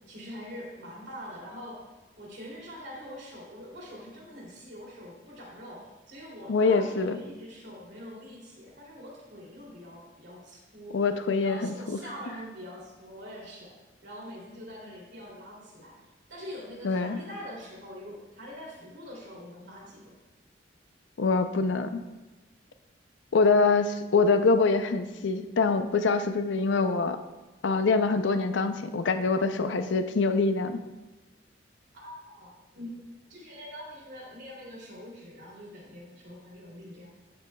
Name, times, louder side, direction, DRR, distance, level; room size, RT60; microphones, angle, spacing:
voice 1, 0.1-1.8 2.2-11.0 11.4-13.7 14.0-16.0 16.3-20.1 31.9-33.0 33.3-37.1, equal, 60° right, -3 dB, 2.8 m, -44 dB
voice 2, 6.5-7.2 10.9-12.0 16.8-17.2 21.2-22.0 23.3-27.2 27.6-30.8, left 4 dB, 65° left, 9 dB, 0.5 m, -24 dB
12.0 x 7.7 x 2.3 m, 1.2 s
head